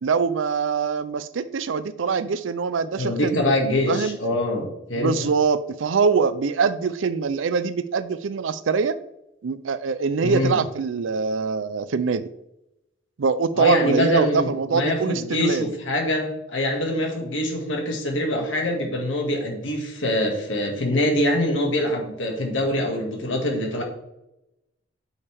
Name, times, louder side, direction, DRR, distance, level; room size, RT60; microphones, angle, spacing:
voice 1, 0.0-3.4 3.9-4.2 5.0-9.0 9.4-12.3 13.2-15.8, right 5 dB, 85° right, 14 dB, 0.5 m, -23 dB
voice 2, 3.0-5.3 10.2-10.6 13.6-23.8, left 1 dB, 80° left, 2 dB, 2.0 m, -24 dB
8.7 x 6.4 x 3.4 m, 0.87 s
head